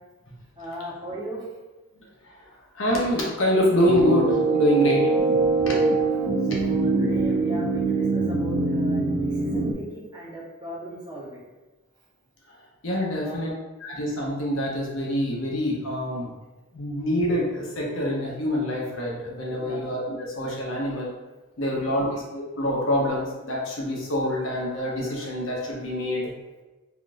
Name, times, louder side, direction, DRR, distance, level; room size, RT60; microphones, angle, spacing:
voice 1, 0.6-1.5 5.7-6.1 6.4-11.4 13.2-13.5 19.6-19.9 21.7-22.1, right 1 dB, 20° right, -6 dB, 0.8 m, -38 dB
voice 2, 2.8-5.1 5.7-5.8 12.8-13.5 13.8-16.3 16.7-21.1 21.6-26.3, equal, 70° left, -3 dB, 0.8 m, -25 dB
sound 1, 3.8-9.7, right 3 dB, 55° right, 0.3 m, -23 dB
3.7 x 2.3 x 2.5 m, 1.1 s
head